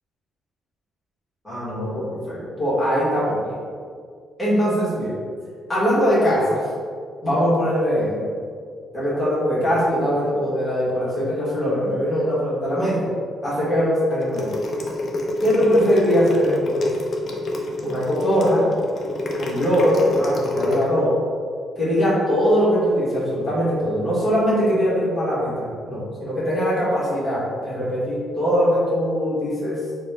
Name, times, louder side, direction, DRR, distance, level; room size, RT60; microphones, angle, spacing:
voice 1, 1.4-3.6 4.4-5.2 5.7-6.6 7.2-8.2 8.9-13.1 13.4-14.5 15.4-16.9 17.8-18.6 19.4-21.1 21.8-29.8, equal, 5° left, -12 dB, 1.3 m, -21 dB
sound 1, 14.2-20.9, left 2 dB, 40° left, 0.4 m, -27 dB
4.3 x 2.1 x 3.3 m, 2.1 s
cardioid pair, 155°, 0 cm